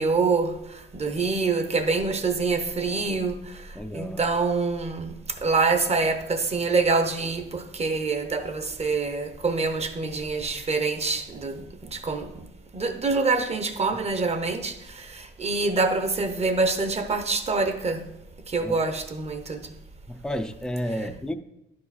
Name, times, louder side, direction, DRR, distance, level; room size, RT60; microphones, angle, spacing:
voice 1, 0.0-3.7 3.9-5.1 5.4-12.5 12.7-18.1 18.5-19.7, right 4 dB, 35° right, 0.9 m, -26 dB
voice 2, 3.7-4.2 18.6-18.8 20.1-21.3, equal, 5° left, 0.5 m, -31 dB
11.0 x 4.8 x 4.2 m
cardioid pair, 90°, 20 cm